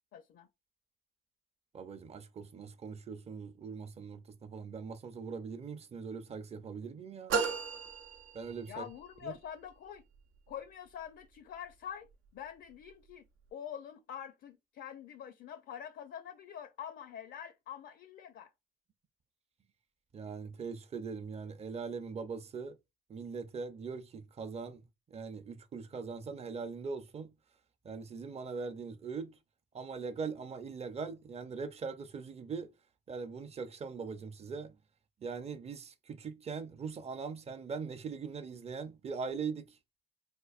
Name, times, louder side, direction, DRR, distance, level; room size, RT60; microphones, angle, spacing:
voice 1, 0.1-0.5 8.7-10.0 10.5-12.1 12.3-13.2 13.5-18.5, left 9 dB, 70° left, 0.5 m, -45 dB
voice 2, 1.7-7.4 8.3-8.9 9.2-9.3 20.1-22.8 23.1-24.8 25.1-27.3 27.8-29.4 29.7-32.7 33.1-34.7 35.2-39.7, right 5 dB, 30° right, 0.5 m, -41 dB
sound 1, 7.3-9.0, right 5 dB, 85° right, 0.6 m, -34 dB
4.4 x 2.5 x 2.4 m
cardioid pair, 90°, 20 cm